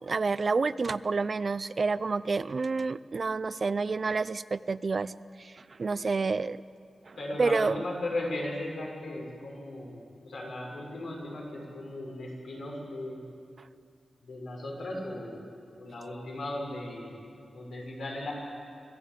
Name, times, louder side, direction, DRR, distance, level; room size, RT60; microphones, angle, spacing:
voice 1, 0.0-5.1 5.4-6.6 7.1-7.8, right 4 dB, 40° right, 16 dB, 0.4 m, -29 dB
voice 2, 7.2-13.2 14.2-15.4 15.8-17.2 17.5-18.3, left 1 dB, 85° left, -2 dB, 6.3 m, -37 dB
25.0 x 15.5 x 8.5 m, 2.4 s
wide cardioid pair, 150°, 0 cm